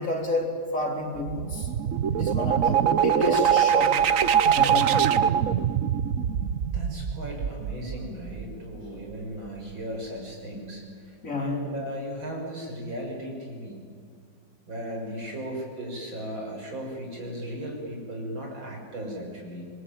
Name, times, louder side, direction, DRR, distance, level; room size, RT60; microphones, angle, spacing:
voice 1, 0.0-1.7 2.1-3.9 4.5-5.0 11.2-11.7, left 2 dB, 40° left, 1 dB, 4.1 m, -30 dB
sound 1, 1.2-8.8, right 8 dB, 55° right, 1.0 m, -23 dB
voice 2, 6.7-10.8 11.4-13.8 14.7-19.7, equal, 80° right, 0 dB, 7.1 m, -36 dB
26.5 x 21.5 x 9.1 m, 2.2 s
omnidirectional pair, 2.1 m